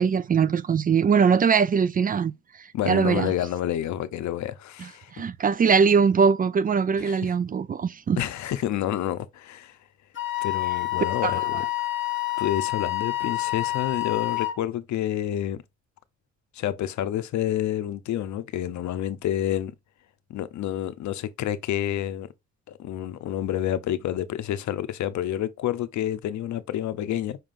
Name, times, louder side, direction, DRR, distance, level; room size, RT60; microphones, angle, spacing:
voice 1, 0.0-2.3 2.6-3.3 5.1-8.2 11.2-11.6, right 6 dB, 30° right, 0.4 m, -21 dB
voice 2, 2.7-5.1 7.0-7.3 8.2-9.8 10.4-11.6 12.4-15.6 16.5-19.7 20.3-22.3 22.7-27.4, left 12 dB, 70° left, 0.7 m, -29 dB
Wind instrument woodwind instrument, 10.2-14.6, left 17 dB, 40° left, 0.8 m, -28 dB
5.8 x 3.6 x 2.5 m
cardioid pair, 90°, 30 cm